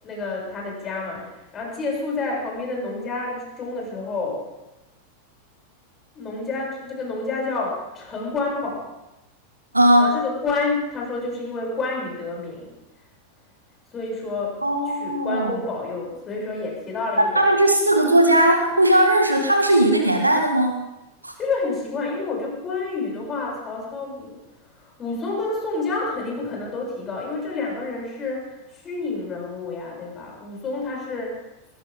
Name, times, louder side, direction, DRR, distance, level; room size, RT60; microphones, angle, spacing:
voice 1, 0.0-4.4 6.1-8.9 10.0-12.7 13.9-14.6 14.9-17.5 21.4-24.4 24.7-31.5, left 3 dB, 25° left, -2 dB, 7.5 m, -29 dB
voice 2, 9.7-10.2 14.6-15.6 17.4-20.9 21.2-21.3, right 1 dB, 85° right, 3 dB, 1.8 m, -18 dB
21.5 x 17.0 x 3.8 m, 0.96 s
figure-of-eight pair, 90°, 0 cm